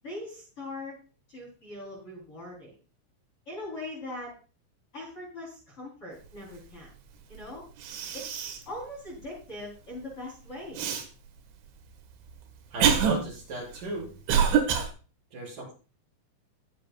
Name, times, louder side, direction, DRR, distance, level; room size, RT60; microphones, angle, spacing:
voice 1, 0.0-1.0 1.3-2.7 3.5-4.3 4.9-6.9 7.3-7.6 8.1-10.8, left 1 dB, 30° left, -5 dB, 3.9 m, -41 dB
Cough, 7.4-7.5 7.8-8.7 9.2-9.3 10.8-11.0 11.8-14.9, right 7 dB, 70° right, 3.8 m, -26 dB
voice 2, 12.7-14.1 15.3-15.7, right 2 dB, 45° right, -4 dB, 7.8 m, -35 dB
21.5 x 7.5 x 2.3 m, 0.36 s
omnidirectional pair, 5.6 m